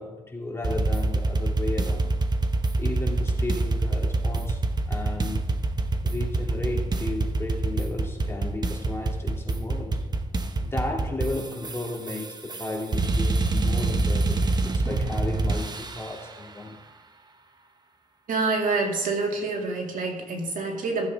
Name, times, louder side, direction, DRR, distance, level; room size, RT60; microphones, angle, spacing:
voice 1, 0.0-2.1 2.8-4.6 4.9-5.5 6.0-10.0 10.6-14.4 14.7-16.8, left 2 dB, 15° left, -1 dB, 2.5 m, -34 dB
sound 1, 0.6-16.2, right 2 dB, 30° right, 0.8 m, -26 dB
voice 2, 18.3-21.1, right 3 dB, 65° right, 1 dB, 2.3 m, -27 dB
15.5 x 7.9 x 3.5 m, 1.3 s
cardioid pair, 105°, 14 cm